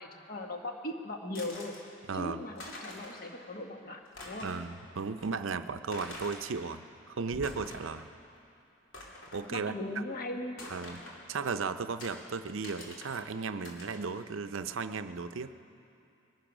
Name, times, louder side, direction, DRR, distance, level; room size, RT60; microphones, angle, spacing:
voice 1, 0.0-1.7 2.1-4.6 9.5-10.7, left 1 dB, 45° left, 3 dB, 1.3 m, -39 dB
sound 1, 1.3-1.8 2.3-2.4 2.6-3.3 3.6-3.7 4.1-4.7 5.2-5.3 5.9-6.4 7.2-8.1 8.4-8.5 8.9-9.5 10.6-11.2 12.0-12.2 12.6-13.2 13.6-14.1, left 1 dB, 75° left, 2.7 m, -46 dB
voice 2, 2.1-2.4 4.4-6.8 7.1-8.1 9.3-9.7 10.7-11.0 11.3-15.5, right 5 dB, 75° right, 11 dB, 0.6 m, -35 dB
22.0 x 10.0 x 6.1 m, 2.7 s
head